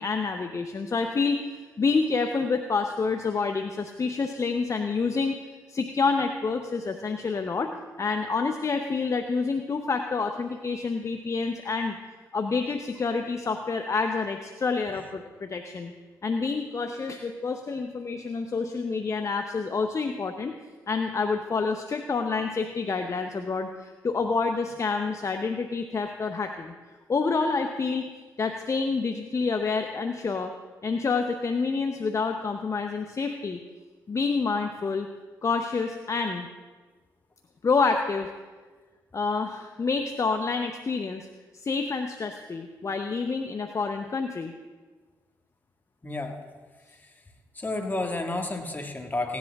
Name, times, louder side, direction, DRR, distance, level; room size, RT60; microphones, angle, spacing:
voice 1, 0.0-1.4 1.8-5.4 5.7-7.7 8.0-12.0 12.3-15.9 16.2-20.5 20.9-26.7 27.1-28.1 28.4-30.5 30.8-33.6 34.1-35.1 35.4-36.5 37.6-38.3 39.1-41.3 41.5-44.5, left 4 dB, 40° left, 5 dB, 0.8 m, -28 dB
voice 2, 46.0-46.4 47.6-49.4, left 2 dB, 25° left, 3 dB, 1.9 m, -31 dB
17.0 x 10.5 x 3.6 m, 1.4 s
supercardioid pair, 55°, 8 cm